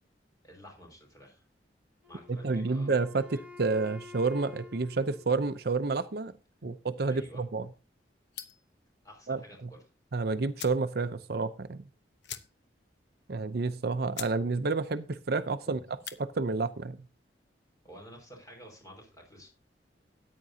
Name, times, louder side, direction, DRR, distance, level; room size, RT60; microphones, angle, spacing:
voice 1, 0.4-1.4 2.1-3.0 3.3-3.4 7.1-7.4 9.0-9.8 15.7-15.8 17.8-19.5, equal, 20° left, 1 dB, 5.0 m, -51 dB
Wind instrument woodwind instrument, 2.0-6.1, left 4 dB, 10° right, 1.6 m, -50 dB
voice 2, 2.3-6.3 6.6-6.7 7.0-7.7 9.3-9.7 10.1-11.9 13.3-15.8 16.2-17.0, right 3 dB, 60° right, 11 dB, 0.6 m, -30 dB
sound 1, 8.3-8.7 10.1-10.2 10.5-10.9 11.3-11.4 11.6-11.7 12.2-12.8 13.2-13.3 13.8-13.9 14.1-14.4 14.7-15.1 15.9-16.2, left 10 dB, 80° left, 0.9 m, -43 dB
14.0 x 9.6 x 2.8 m, 0.32 s
head